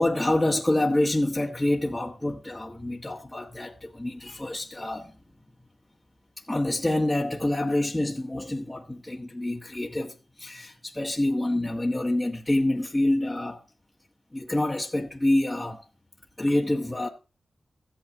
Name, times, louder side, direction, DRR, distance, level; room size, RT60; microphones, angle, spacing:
voice 1, 0.0-5.1 6.5-13.6 14.3-15.8 16.4-17.1, left 1 dB, 15° left, 1.7 m, -27 dB
15.5 x 8.8 x 2.9 m
wide cardioid pair, 95°, 0 cm